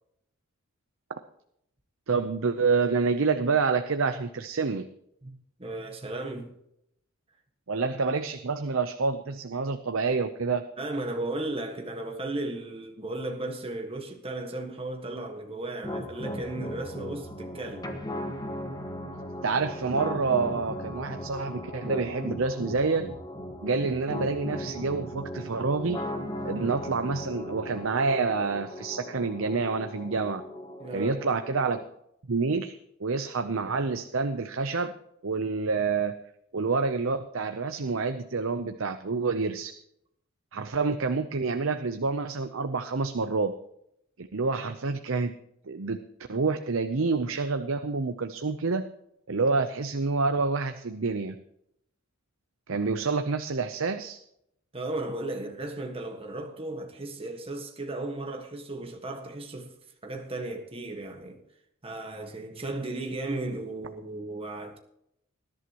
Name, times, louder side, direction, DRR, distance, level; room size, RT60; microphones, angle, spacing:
voice 1, 2.1-4.9 7.7-10.6 19.4-23.0 23.6-26.0 26.4-30.4 30.9-31.8 32.3-34.9 35.2-36.1 36.5-39.7 40.5-43.5 44.2-45.3 45.7-46.0 46.3-48.8 49.3-51.4 52.7-54.2, right 4 dB, 65° right, 0.7 m, -28 dB
voice 2, 5.2-6.6 10.8-17.9 30.8-31.2 54.7-59.7 60.0-61.4 61.8-64.8, right 2 dB, 25° right, 1.6 m, -35 dB
sound 1, 15.8-31.8, left 1 dB, 20° left, 1.5 m, -37 dB
20.0 x 11.5 x 3.0 m
head